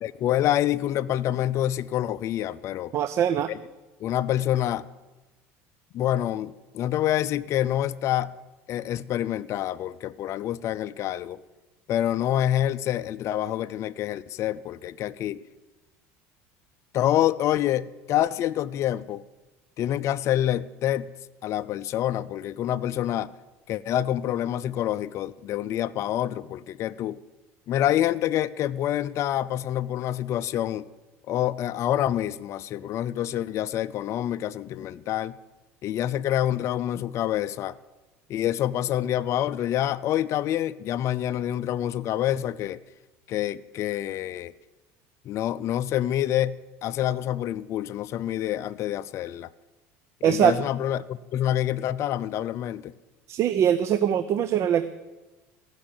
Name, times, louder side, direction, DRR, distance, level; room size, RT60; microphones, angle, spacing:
voice 1, 0.0-2.9 4.0-4.9 5.9-8.3 8.7-11.4 11.9-15.4 16.9-19.2 19.8-21.1 21.4-23.3 23.7-27.2 27.7-30.9 31.3-35.4 35.8-37.7 38.3-42.8 43.3-44.5 45.3-49.5 50.2-52.9, left 12 dB, 50° left, 0.5 m, -27 dB
voice 2, 2.9-3.5 50.2-50.6 53.3-54.9, right 9 dB, 50° right, 0.5 m, -22 dB
14.5 x 6.1 x 8.7 m
supercardioid pair, 110°, 6 cm